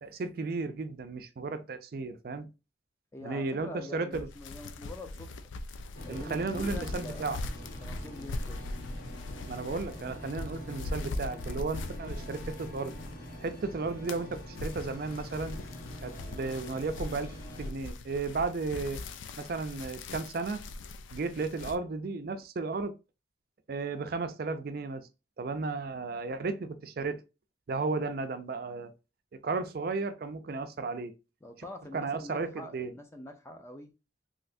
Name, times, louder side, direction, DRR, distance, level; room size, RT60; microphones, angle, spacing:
voice 1, 0.0-2.5 3.2-4.3 6.1-7.4 9.5-12.9 13.4-15.6 16.0-19.0 19.4-20.6 21.1-22.9 23.7-25.1 25.4-27.2 27.7-28.9 29.4-31.1 31.9-32.9, right 4 dB, 50° right, 0.4 m, -34 dB
voice 2, 3.1-5.3 6.0-7.2 7.8-8.6 31.4-33.9, left 1 dB, 15° left, 0.4 m, -45 dB
sound 1, 4.1-13.5 13.8-21.7, left 2 dB, 85° left, 0.4 m, -41 dB
sound 2, 5.9-17.7, equal, 55° left, 1.3 m, -45 dB
3.2 x 2.8 x 2.5 m
head